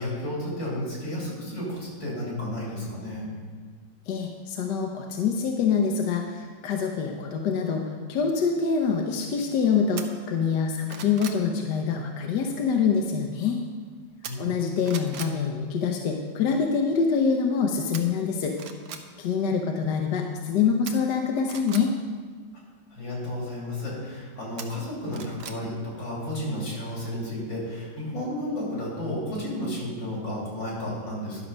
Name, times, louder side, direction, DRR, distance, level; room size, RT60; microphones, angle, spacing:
voice 1, 0.0-3.3 14.3-14.6 22.9-31.4, left 1 dB, 85° left, -5 dB, 3.8 m, -32 dB
voice 2, 4.1-13.6 14.4-18.5 19.2-21.9, left 6 dB, 70° left, 2 dB, 1.3 m, -25 dB
sound 1, 10.0-10.1 10.6-11.4 14.2-14.6 14.8-15.3 17.9-18.0 18.5-19.0 20.9-21.8 24.6-25.6 26.0-26.1, right 7 dB, 65° right, 1.2 m, -39 dB
11.0 x 6.4 x 5.2 m, 1.5 s
omnidirectional pair, 2.0 m